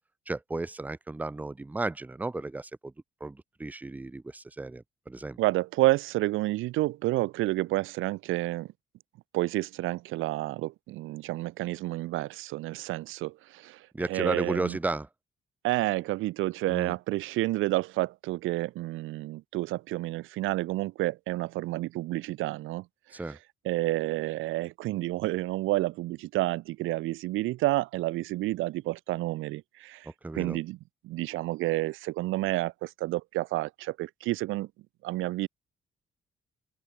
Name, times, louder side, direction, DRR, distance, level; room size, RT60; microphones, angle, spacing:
voice 1, 0.3-2.9 3.2-5.4 13.9-15.1 16.7-17.0 23.1-23.4 30.2-30.6, right 2 dB, 10° right, 0.4 m, -34 dB
voice 2, 5.4-8.7 9.3-13.8 14.1-14.8 15.6-22.8 23.6-30.1 30.3-30.8 31.0-34.7 35.0-35.5, right 18 dB, 90° right, 0.6 m, -30 dB
open air
cardioid pair, 90°, 20 cm